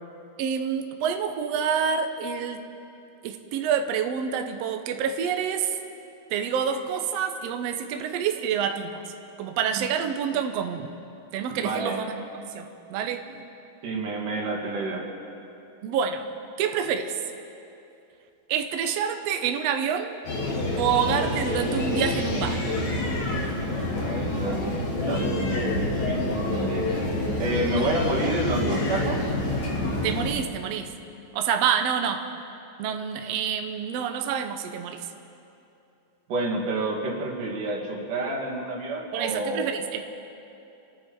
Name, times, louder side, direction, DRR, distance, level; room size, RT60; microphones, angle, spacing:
voice 1, 0.4-2.6 3.2-5.8 6.3-9.0 9.4-10.9 11.3-12.3 12.5-13.4 15.8-16.2 16.6-17.2 18.5-20.2 20.8-22.7 27.8-27.9 30.0-30.9 31.3-32.3 32.8-35.1 39.1-40.0, right 7 dB, 90° right, 6 dB, 1.4 m, -27 dB
voice 2, 11.6-12.0 13.8-15.0 23.8-24.7 25.1-26.9 27.4-29.3 36.3-39.7, right 2 dB, 65° right, -3 dB, 3.6 m, -29 dB
sound 1, 20.3-30.3, left 2 dB, 55° left, 3.2 m, -27 dB
27.0 x 9.9 x 4.7 m, 2.8 s
omnidirectional pair, 4.0 m